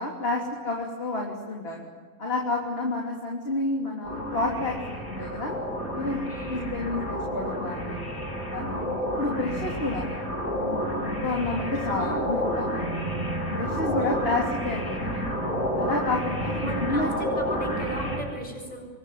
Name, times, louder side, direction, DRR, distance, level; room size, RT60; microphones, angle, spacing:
voice 1, 0.0-1.9 2.2-5.5 5.9-6.2 6.5-8.2 8.5-10.1 10.5-12.8 13.5-15.2 15.8-17.1, left 2 dB, 45° left, 0 dB, 3.6 m, -30 dB
sound 1, 4.0-18.2, equal, 90° left, 8.7 m, -30 dB
voice 2, 6.3-6.8 11.7-12.3 13.9-14.3 16.4-18.9, right 1 dB, 30° left, 2 dB, 7.7 m, -36 dB
26.5 x 23.5 x 9.4 m, 1.5 s
omnidirectional pair, 1.5 m